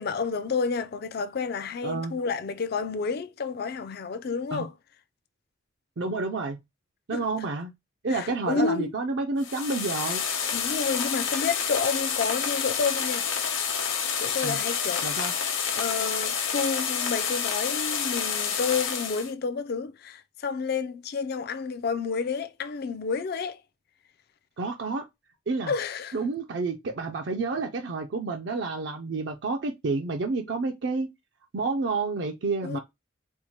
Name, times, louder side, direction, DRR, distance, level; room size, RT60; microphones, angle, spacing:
voice 1, 0.0-4.7 7.1-7.2 8.1-8.9 10.5-13.3 14.2-15.0 15.7-23.6 25.7-26.2 32.6-32.8, left 5 dB, 50° left, 0.4 m, -30 dB
voice 2, 1.8-2.2 4.5-4.7 6.0-6.6 7.1-7.7 8.0-10.2 14.4-14.6 15.0-15.3 24.6-25.0 25.5-25.7 26.1-31.1 31.5-32.8, right 3 dB, 60° right, 0.5 m, -29 dB
sound 1, 9.4-19.3, left 7 dB, 80° left, 0.9 m, -29 dB
4.4 x 2.1 x 2.9 m
head